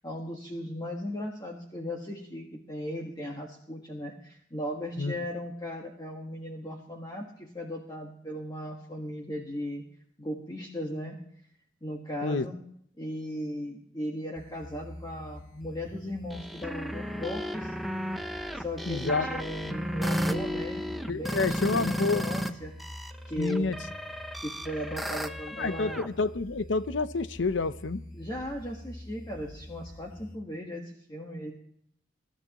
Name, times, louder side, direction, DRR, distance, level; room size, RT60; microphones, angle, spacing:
voice 1, 0.0-9.8 10.2-11.2 11.8-12.6 13.0-17.7 18.5-22.7 23.2-23.7 24.4-26.0 28.1-31.5, equal, 20° left, 1.5 m, -37 dB
sound 1, 14.4-30.4, left 1 dB, 45° left, 1.4 m, -46 dB
sound 2, 16.3-22.5 22.8-26.1, equal, ahead, 0.9 m, -34 dB
voice 2, 18.9-19.3 21.1-22.3 23.4-23.8 25.6-28.0, left 3 dB, 75° left, 0.7 m, -28 dB
24.0 x 12.5 x 3.0 m
head